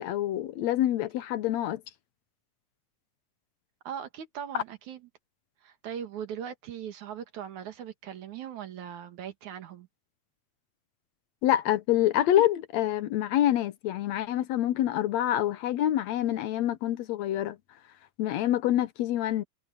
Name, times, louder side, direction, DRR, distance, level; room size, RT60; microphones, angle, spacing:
voice 1, 0.0-1.8 4.5-4.6 11.4-17.6 18.2-19.4, left 12 dB, 75° left, 2.0 m, -26 dB
voice 2, 3.8-5.0 5.6-9.9, right 9 dB, 80° right, 3.2 m, -39 dB
omnidirectional pair, 3.3 m